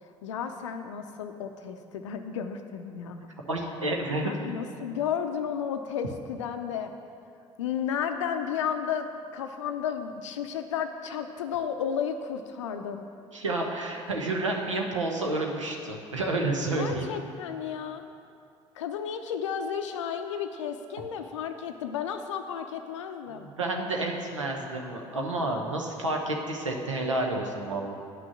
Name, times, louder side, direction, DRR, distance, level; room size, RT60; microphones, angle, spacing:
voice 1, 0.2-3.3 4.2-6.9 7.6-13.0 16.8-18.1 18.8-23.5, left 8 dB, 80° left, 6 dB, 0.5 m, -33 dB
voice 2, 3.5-4.3 13.3-17.1 23.3-27.9, right 2 dB, 90° right, 1 dB, 0.9 m, -30 dB
9.5 x 6.1 x 7.1 m, 2.4 s
figure-of-eight pair, 55°, 15 cm